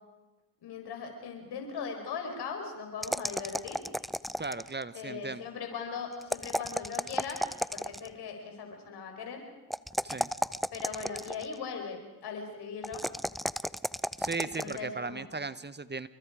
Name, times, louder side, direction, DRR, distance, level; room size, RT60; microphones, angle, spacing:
voice 1, 0.6-3.8 4.9-7.4 7.7-9.5 10.7-13.0 14.4-15.2, left 5 dB, 85° left, 4 dB, 4.8 m, -39 dB
sound 1, 3.0-4.8 6.2-8.1 9.7-11.5 12.8-14.8, equal, ahead, 0.7 m, -33 dB
voice 2, 4.4-5.4 10.0-10.3 14.2-16.1, right 3 dB, 25° right, 15 dB, 1.3 m, -36 dB
28.5 x 23.5 x 5.0 m, 1.1 s
supercardioid pair, 45°, 39 cm